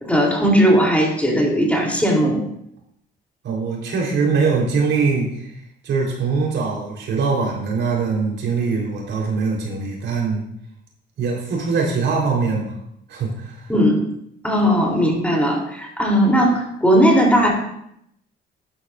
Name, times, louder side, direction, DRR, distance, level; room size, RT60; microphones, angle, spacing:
voice 1, 0.0-2.4 13.7-14.0 14.4-17.5, equal, 5° left, -2 dB, 3.3 m, -17 dB
voice 2, 3.4-5.5 5.8-10.4 11.2-12.7 13.1-13.6, right 4 dB, 70° right, -2 dB, 3.8 m, -22 dB
13.0 x 11.0 x 2.5 m, 0.74 s
cardioid pair, 90°, 20 cm